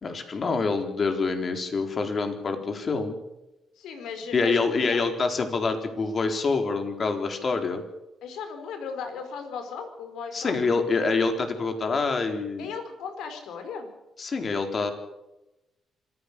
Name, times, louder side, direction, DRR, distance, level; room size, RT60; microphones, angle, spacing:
voice 1, 0.0-3.2 4.3-7.8 10.3-12.7 14.2-14.9, left 4 dB, 40° left, 5 dB, 4.1 m, -26 dB
voice 2, 3.8-5.0 8.2-10.5 12.6-13.9, left 6 dB, 85° left, 7 dB, 4.9 m, -37 dB
26.0 x 15.0 x 6.9 m, 0.95 s
cardioid pair, 100°, 0 cm